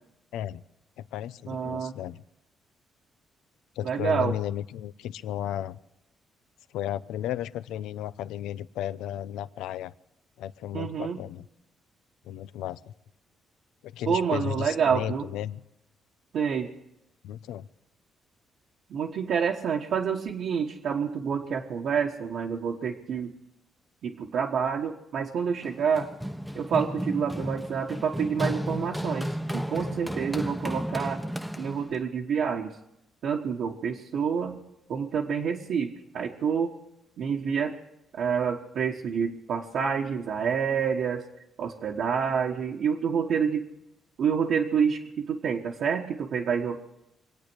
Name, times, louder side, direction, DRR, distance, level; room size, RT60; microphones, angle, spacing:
voice 1, 0.3-0.6 1.0-2.2 3.8-5.8 6.7-9.9 10.4-11.5 12.2-12.9 13.8-15.6 17.2-17.7, left 11 dB, 90° left, 16 dB, 0.5 m, -34 dB
voice 2, 1.5-1.9 3.8-4.3 10.7-11.2 14.0-15.3 16.3-16.7 18.9-23.3 24.0-26.1 26.5-31.2 31.6-32.7 33.2-34.6 34.9-36.7 37.2-37.7 38.1-41.3 41.6-43.7 44.2-46.8, right 6 dB, 70° right, -2 dB, 1.4 m, -28 dB
Run, 25.6-32.0, equal, ahead, 0.9 m, -33 dB
25.5 x 8.7 x 6.3 m, 0.86 s
cardioid pair, 90°, 0 cm